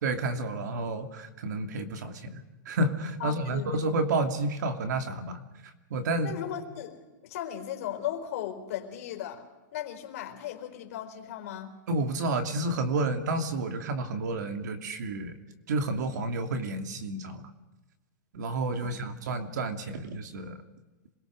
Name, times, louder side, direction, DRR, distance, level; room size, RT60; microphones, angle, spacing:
voice 1, 0.0-2.4 2.7-5.4 5.9-6.4 11.9-15.3 15.7-17.4 18.3-20.5, right 2 dB, 65° right, 7 dB, 2.8 m, -30 dB
voice 2, 3.2-3.8 6.2-7.0 7.2-9.4 9.7-11.7 18.8-19.1, left 11 dB, 50° left, 4 dB, 4.4 m, -37 dB
27.0 x 22.0 x 6.5 m, 1.1 s
supercardioid pair, 170°, 10 cm